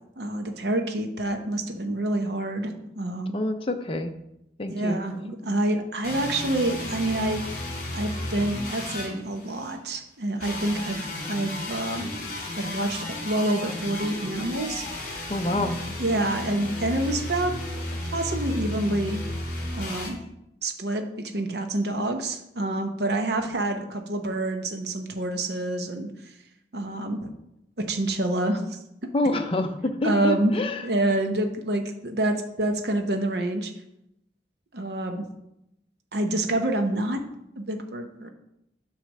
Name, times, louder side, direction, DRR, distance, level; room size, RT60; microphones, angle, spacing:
voice 1, 0.2-3.4 4.7-7.5 7.9-12.1 12.6-14.9 16.0-19.2 19.7-20.2 20.6-26.1 26.7-27.3 27.8-28.8 30.0-30.5 30.8-33.7 34.7-35.3 36.1-37.2 37.6-38.3, right 1 dB, 60° right, 5 dB, 0.8 m, -27 dB
voice 2, 3.3-4.1 4.6-5.0 15.3-15.8 29.1-30.9, left 2 dB, 30° left, 6 dB, 0.6 m, -27 dB
sound 1, 6.0-9.8 10.4-20.1, left 1 dB, 50° left, 2.1 m, -34 dB
9.1 x 3.3 x 6.3 m, 0.83 s
head